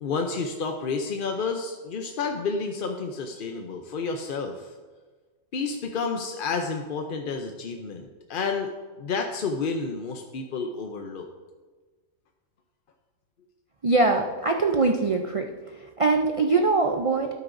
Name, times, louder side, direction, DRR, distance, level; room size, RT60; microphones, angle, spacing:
voice 1, 0.0-4.7 5.5-8.7 9.0-11.3, left 4 dB, 50° left, 4 dB, 0.7 m, -30 dB
voice 2, 13.8-17.3, right 3 dB, 45° right, 3 dB, 0.4 m, -23 dB
12.5 x 9.8 x 2.6 m, 1.4 s
omnidirectional pair, 1.4 m